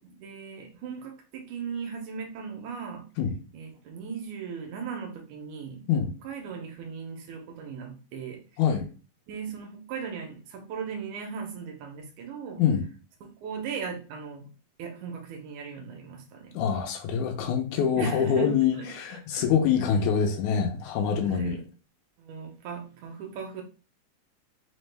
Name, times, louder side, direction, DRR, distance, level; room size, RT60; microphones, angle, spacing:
voice 1, 0.1-3.1 3.5-8.4 9.3-12.6 13.4-14.5 14.8-16.6 18.0-18.9 19.3-19.4 21.2-21.6 22.2-23.6, right 6 dB, 90° right, 2.1 m, -38 dB
voice 2, 16.5-21.6, left 7 dB, 90° left, 2.0 m, -25 dB
5.1 x 2.1 x 3.2 m
omnidirectional pair, 3.3 m